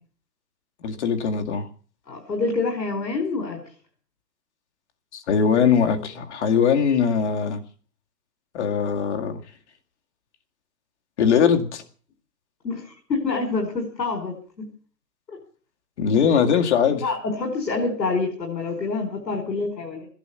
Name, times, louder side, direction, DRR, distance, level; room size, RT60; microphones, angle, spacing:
voice 1, 0.8-1.7 5.1-7.6 8.5-9.4 11.2-11.8 16.0-17.0, left 7 dB, 45° left, 2.0 m, -21 dB
voice 2, 2.1-3.6 12.6-14.7 15.3-15.4 17.0-20.1, left 3 dB, 90° left, 5.5 m, -27 dB
16.5 x 11.5 x 7.0 m
hypercardioid pair, 155°, 49 cm